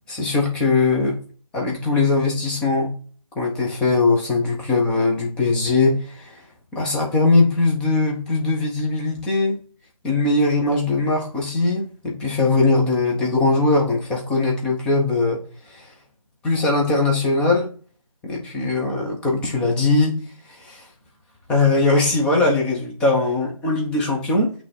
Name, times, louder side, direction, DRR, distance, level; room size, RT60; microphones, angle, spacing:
voice 1, 0.1-1.2 1.5-2.9 3.4-6.4 6.7-9.6 10.0-15.4 15.7-15.9 16.4-17.7 18.2-20.9 21.5-24.5, left 3 dB, 5° left, -1 dB, 0.8 m, -20 dB
8.3 x 3.4 x 4.2 m, 0.41 s
figure-of-eight pair, 155°, 18 cm